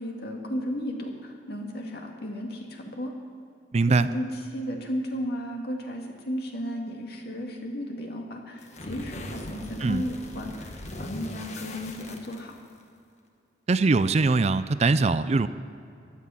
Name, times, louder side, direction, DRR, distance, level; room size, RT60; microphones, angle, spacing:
voice 1, 0.0-3.1 4.0-12.6, equal, 60° left, 1 dB, 2.2 m, -34 dB
voice 2, 3.7-4.1 9.8-10.0 13.7-15.5, right 3 dB, 40° right, 13 dB, 0.4 m, -22 dB
sound 1, 8.6-12.8, left 1 dB, 40° left, 1.4 m, -40 dB
15.5 x 12.0 x 5.7 m, 2.5 s
head